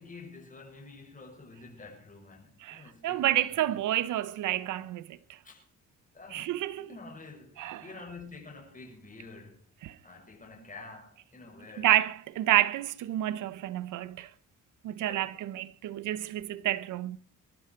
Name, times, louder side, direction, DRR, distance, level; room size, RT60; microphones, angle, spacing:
voice 1, 0.0-3.8 5.4-5.6 6.1-9.6 10.0-11.9 15.0-15.4, left 3 dB, 25° left, 6.5 m, -48 dB
voice 2, 2.6-5.2 6.3-6.9 7.6-7.9 9.8-10.0 11.8-14.3 14.8-17.2, right 14 dB, 80° right, 1.0 m, -29 dB
22.5 x 12.0 x 4.7 m
cardioid pair, 90°, 30 cm